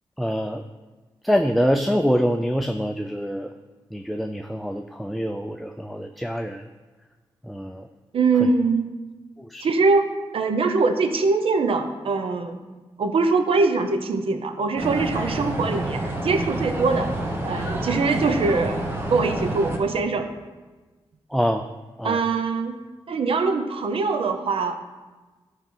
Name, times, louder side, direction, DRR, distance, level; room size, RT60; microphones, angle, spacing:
voice 1, 0.2-0.6 1.2-3.5 3.9-6.6 7.5-7.9 8.4-8.5 9.5-9.7 21.3-21.7 22.0-22.2, equal, ahead, 5 dB, 0.4 m, -25 dB
voice 2, 8.1-8.9 9.6-12.6 13.0-17.1 17.4-20.3 22.0-22.7 23.1-24.8, right 4 dB, 70° right, 7 dB, 0.8 m, -23 dB
sound 1, 14.8-19.8, right 1 dB, 25° right, 1.4 m, -28 dB
12.0 x 4.9 x 5.6 m, 1.3 s
wide cardioid pair, 95°, 10 cm